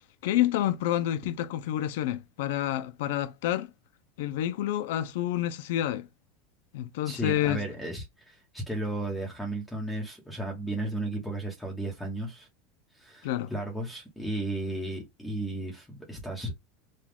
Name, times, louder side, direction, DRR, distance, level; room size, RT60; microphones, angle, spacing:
voice 1, 0.2-3.7 4.2-6.1 6.7-7.6 13.2-13.5, left 13 dB, 70° left, 0.4 m, -28 dB
voice 2, 7.0-12.5 12.9-16.6, right 1 dB, 5° left, 1.0 m, -34 dB
5.0 x 2.3 x 3.5 m
supercardioid pair, 165°, 0 cm